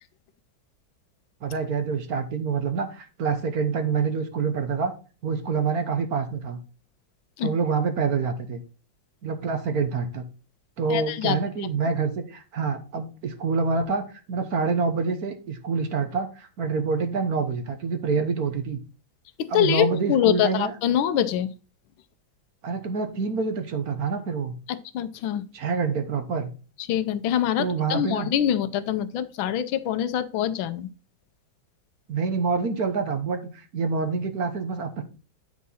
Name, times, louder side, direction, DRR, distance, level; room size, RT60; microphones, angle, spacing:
voice 1, 1.4-4.9 5.2-6.6 7.4-8.6 9.2-10.2 10.8-18.8 19.5-20.7 22.6-24.5 25.5-26.5 27.6-28.3 32.1-35.0, right 5 dB, 55° right, 7 dB, 1.2 m, -26 dB
voice 2, 10.9-11.7 19.4-21.5 24.7-25.5 26.9-30.9, left 10 dB, 80° left, 11 dB, 1.4 m, -25 dB
9.4 x 4.7 x 4.1 m, 0.36 s
omnidirectional pair, 2.2 m